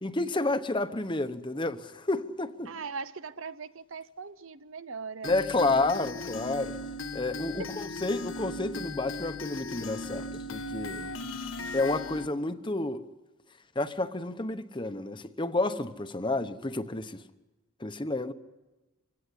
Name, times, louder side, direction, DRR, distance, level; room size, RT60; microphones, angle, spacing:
voice 1, 0.0-2.7 5.2-6.7 7.1-11.1 11.7-13.0 13.7-17.2 17.8-18.3, left 2 dB, 20° left, 1.0 m, -30 dB
voice 2, 2.7-5.9 7.6-7.7, right 4 dB, 70° right, 0.8 m, -40 dB
sound 1, 5.2-12.3, left 2 dB, 65° left, 1.4 m, -37 dB
25.5 x 17.5 x 9.9 m
head